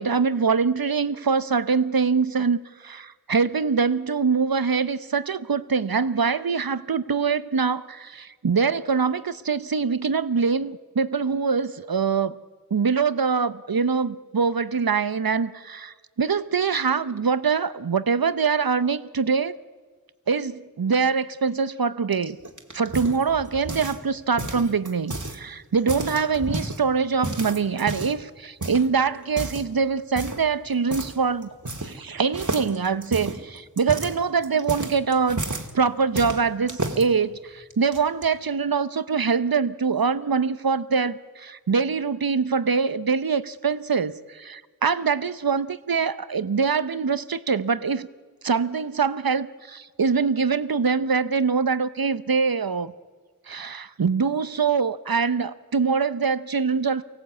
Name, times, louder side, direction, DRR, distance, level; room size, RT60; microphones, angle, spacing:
voice 1, 0.0-12.4 12.7-19.5 20.3-22.4 22.7-31.5 31.8-35.4 35.7-48.1 48.4-52.9 53.5-57.0, right 5 dB, 75° right, 14 dB, 0.8 m, -24 dB
sound 1, 22.1-24.1 24.4-25.4 25.7-26.8 27.2-28.2 28.6-28.9 29.3-29.7 30.2-30.5 30.9-31.2 31.4-32.1 32.3-35.7 36.2-37.0 37.7-38.2, right 2 dB, 55° right, 2.0 m, -31 dB
24.0 x 17.5 x 8.3 m, 1.5 s
wide cardioid pair, 40°, 35 cm